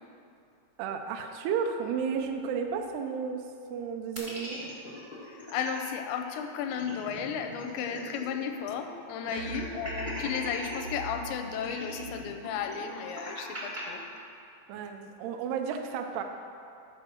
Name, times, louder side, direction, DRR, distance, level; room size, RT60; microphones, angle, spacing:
voice 1, 0.8-3.4 3.7-4.6 9.3-9.5 14.7-16.2, right 6 dB, 80° right, 5 dB, 2.6 m, -33 dB
sound 1, 2.0-2.9 9.4-12.4, right 2 dB, 65° right, 1.7 m, -44 dB
sound 2, 4.1-5.9 6.2-6.3 6.6-8.4 8.7-8.8 9.3-10.9 11.5-13.8, equal, 35° right, 0.7 m, -40 dB
voice 2, 5.2-14.0 14.7-14.9, left 7 dB, 85° left, 6 dB, 2.9 m, -34 dB
14.0 x 4.8 x 6.3 m, 2.6 s
omnidirectional pair, 5.0 m